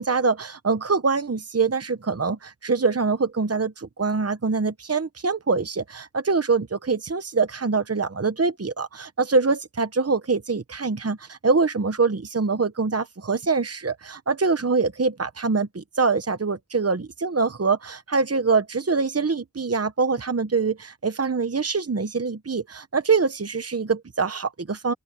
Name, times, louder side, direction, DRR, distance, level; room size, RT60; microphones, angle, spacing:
voice 1, 0.0-24.9, right 4 dB, 50° right, 0.9 m, -24 dB
open air
wide cardioid pair, 45°, 32 cm